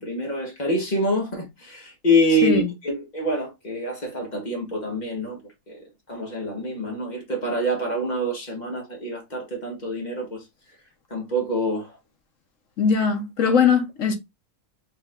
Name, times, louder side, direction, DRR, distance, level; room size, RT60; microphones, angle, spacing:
voice 1, 0.0-5.4 5.7-5.8 6.1-10.4 11.1-11.9, equal, 30° left, 1.7 m, -26 dB
voice 2, 12.8-14.1, left 6 dB, 60° left, 1.4 m, -20 dB
4.4 x 3.1 x 3.7 m
omnidirectional pair, 1.5 m